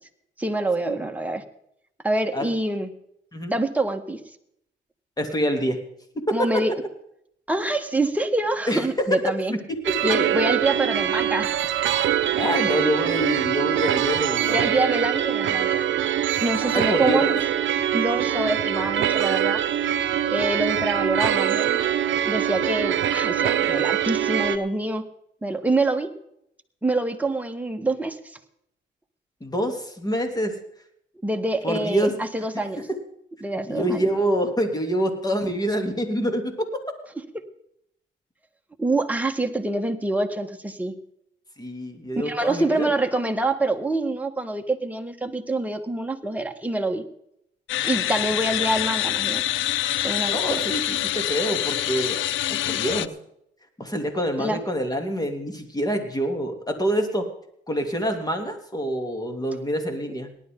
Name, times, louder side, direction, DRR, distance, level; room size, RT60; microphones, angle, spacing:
voice 1, 0.4-1.4 2.0-2.9 3.5-4.2 6.3-6.7 7.5-9.5 10.0-11.6 14.5-15.8 16.4-17.3 17.9-19.6 20.3-21.9 22.2-25.1 25.4-26.1 26.8-28.3 31.2-32.9 33.4-34.1 38.8-40.9 42.2-47.0 47.8-49.4 50.0-50.4 54.4-54.6, right 2 dB, 5° right, 4 dB, 1.8 m, -26 dB
voice 2, 5.2-5.8 6.1-6.6 8.7-8.9 9.5-10.0 12.4-14.8 16.6-17.4 29.4-30.6 31.6-32.2 32.5-33.0 33.7-36.6 41.6-42.9 50.3-52.2 52.5-53.1 53.8-57.3 57.7-60.3, equal, 20° left, 4 dB, 3.1 m, -26 dB
sound 1, 9.8-24.6, right 10 dB, 70° right, 1.0 m, -23 dB
sound 2, 47.7-53.1, left 13 dB, 80° left, 0.6 m, -26 dB
18.5 x 11.5 x 3.9 m, 0.73 s
cardioid pair, 90°, 20 cm